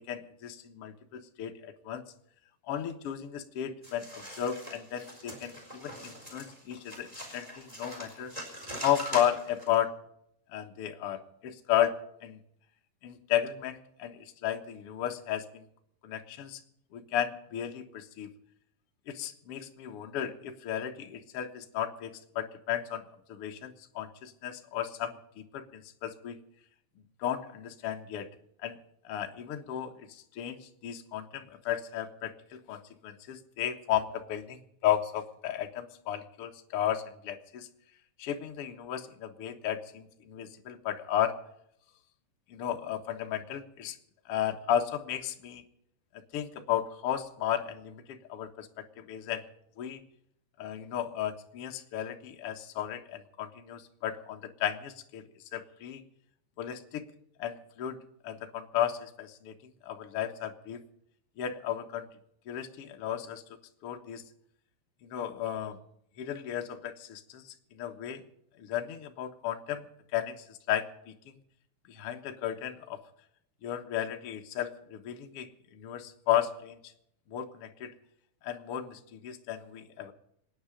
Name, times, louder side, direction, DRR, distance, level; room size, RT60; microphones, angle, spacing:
voice 1, 0.0-2.0 2.7-8.3 8.8-9.9 10.5-11.9 12.2-12.4 13.0-15.6 16.0-16.6 16.9-18.3 19.1-25.2 25.5-26.4 27.2-28.3 28.6-28.8 29.0-32.3 32.7-37.7 38.2-41.3 42.5-44.0 44.2-45.6 46.3-49.4 49.8-50.0 50.6-55.2 55.5-56.0 56.6-57.0 57.4-58.0 58.2-59.5 59.8-60.8 61.4-62.1 62.5-63.4 63.8-64.2 65.0-65.8 66.2-68.2 68.6-69.8 70.1-71.4 71.9-73.0 73.6-76.8 77.3-77.9 78.4-80.1, left 10 dB, 55° left, 4 dB, 1.6 m, -34 dB
sound 1, 3.8-9.8, equal, 10° right, 4.2 m, -42 dB
26.5 x 9.6 x 5.1 m, 0.76 s
omnidirectional pair, 4.6 m